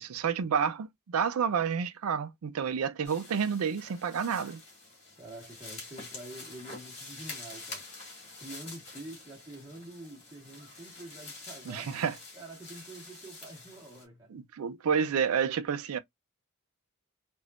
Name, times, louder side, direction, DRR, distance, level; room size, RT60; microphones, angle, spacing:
voice 1, 0.0-4.6 11.7-12.2 14.3-16.0, right 7 dB, 90° right, 0.4 m, -30 dB
sound 1, 3.0-14.0, left 3 dB, 35° left, 1.7 m, -47 dB
voice 2, 5.2-7.9 8.4-11.9 12.3-14.3, right 1 dB, 15° right, 1.3 m, -47 dB
3.3 x 2.6 x 2.3 m
head